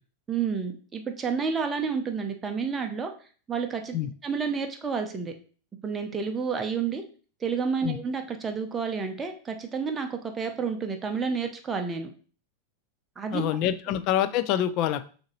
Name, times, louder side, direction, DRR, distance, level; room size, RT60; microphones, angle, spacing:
voice 1, 0.3-3.1 3.5-4.0 4.2-5.3 5.8-7.0 7.4-12.1 13.2-13.5, right 5 dB, 15° right, 4 dB, 0.7 m, -30 dB
voice 2, 13.3-15.1, left 11 dB, 40° left, 12 dB, 0.4 m, -26 dB
6.2 x 2.7 x 3.0 m, 0.40 s
figure-of-eight pair, 90°, 0 cm